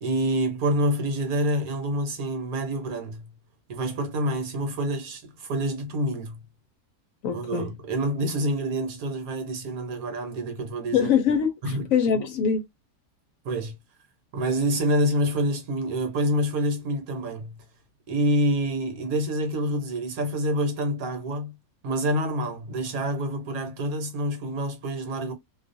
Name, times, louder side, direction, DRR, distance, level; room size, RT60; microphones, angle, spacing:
voice 1, 0.0-3.3 3.7-6.4 7.3-11.1 11.6-11.8 13.4-13.7 14.3-17.6 18.1-21.5 21.8-25.3, right 1 dB, 70° right, 1.2 m, -27 dB
voice 2, 7.2-7.8 10.9-12.6, left 7 dB, 70° left, 0.9 m, -23 dB
2.5 x 2.3 x 2.5 m
omnidirectional pair, 1.7 m